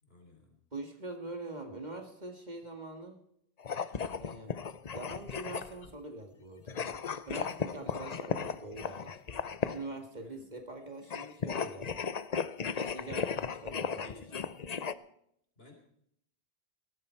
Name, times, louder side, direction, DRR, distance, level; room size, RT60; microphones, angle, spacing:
voice 1, 0.0-0.6 10.2-10.5 13.0-13.6 14.0-14.4 15.6-15.7, left 2 dB, 70° left, 2 dB, 3.8 m, -56 dB
voice 2, 0.7-3.2 4.2-4.5 4.9-9.2 9.7-12.1 12.7-13.2 13.6-14.1, right 2 dB, 45° right, 5 dB, 2.1 m, -43 dB
sound 1, 3.6-5.9 6.7-9.9 11.0-14.9, left 6 dB, 45° left, 0.7 m, -36 dB
18.0 x 14.0 x 4.5 m, 0.72 s
omnidirectional pair, 1.1 m